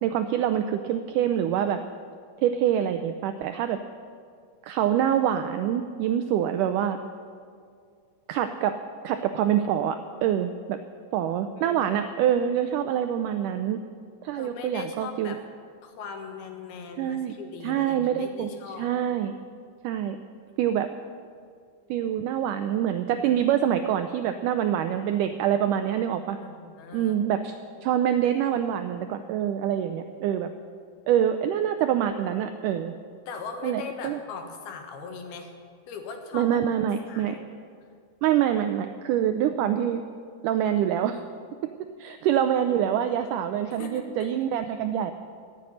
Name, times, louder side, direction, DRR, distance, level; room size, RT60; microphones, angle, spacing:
voice 1, 0.0-1.8 2.4-3.8 4.6-7.0 8.3-8.8 9.0-10.8 11.1-13.8 14.2-15.3 17.0-17.3 17.6-18.5 18.8-19.3 19.8-20.2 20.6-20.9 21.9-26.4 26.9-27.6 27.8-30.5 31.1-32.9 33.6-34.2 36.3-37.4 38.2-40.0 40.4-41.2 42.0-45.1, right 10 dB, 85° right, 9 dB, 1.8 m, -25 dB
voice 2, 11.6-12.1 14.3-15.4 15.8-18.9 26.4-27.2 33.3-35.5 35.9-36.8 37.1-37.5 43.7-44.0, left 5 dB, 90° left, 4 dB, 3.3 m, -39 dB
13.5 x 7.9 x 9.9 m, 2.2 s
omnidirectional pair, 4.2 m